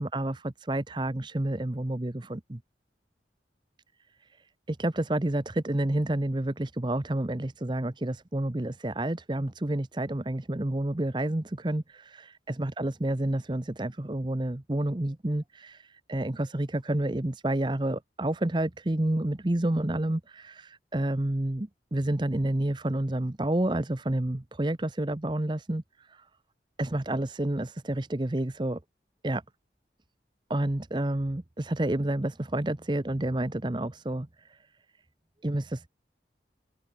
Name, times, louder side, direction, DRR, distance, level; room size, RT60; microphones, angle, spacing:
voice 1, 0.0-2.6 4.7-26.2 26.8-28.8 29.2-29.4 30.5-34.6 35.4-35.9, right 1 dB, 25° right, 0.8 m, -29 dB
head